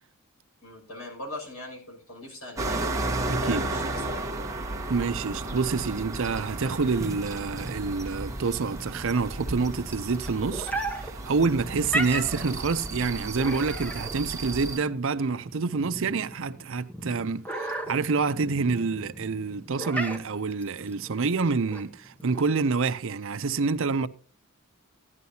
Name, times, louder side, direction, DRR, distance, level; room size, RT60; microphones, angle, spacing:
voice 1, 0.6-2.8 3.4-4.4, left 1 dB, 75° left, 6.4 m, -40 dB
sound 1, 2.6-14.8, right 2 dB, 15° right, 1.3 m, -34 dB
voice 2, 3.3-3.6 4.9-24.1, right 4 dB, 60° right, 0.6 m, -27 dB
sound 2, 6.8-22.8, right 1 dB, 5° left, 1.1 m, -37 dB
16.0 x 11.0 x 2.8 m
head